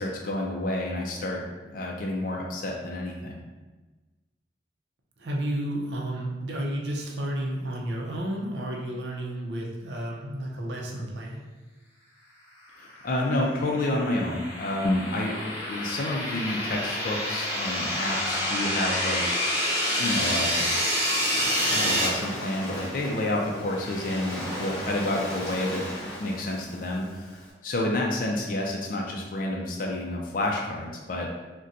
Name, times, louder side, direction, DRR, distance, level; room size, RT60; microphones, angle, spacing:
voice 1, 0.0-3.4 12.8-19.3 20.0-20.8 21.3-31.3, left 1 dB, 50° left, -1 dB, 0.4 m, -29 dB
voice 2, 5.2-11.4, right 1 dB, 75° right, -1 dB, 0.5 m, -32 dB
sound 1, 13.1-22.1, equal, 15° right, 0.8 m, -28 dB
Waves surf, 20.7-27.5, equal, 15° left, 1.1 m, -37 dB
4.0 x 2.2 x 2.5 m, 1.2 s
head